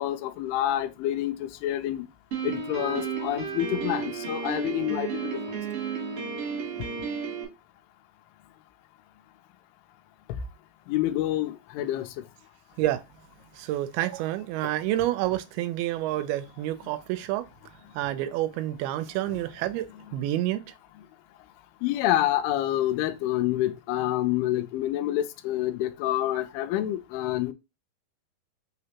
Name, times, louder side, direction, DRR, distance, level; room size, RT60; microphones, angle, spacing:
voice 1, 0.0-2.0 2.4-5.4 10.9-12.1 19.3-19.4 21.8-27.5, left 13 dB, 90° left, 2.5 m, -27 dB
Piano, 2.3-7.4, right 6 dB, 65° right, 1.4 m, -32 dB
voice 2, 13.6-17.4 18.0-20.6, right 14 dB, 85° right, 2.4 m, -28 dB
5.5 x 3.3 x 2.8 m
omnidirectional pair, 4.4 m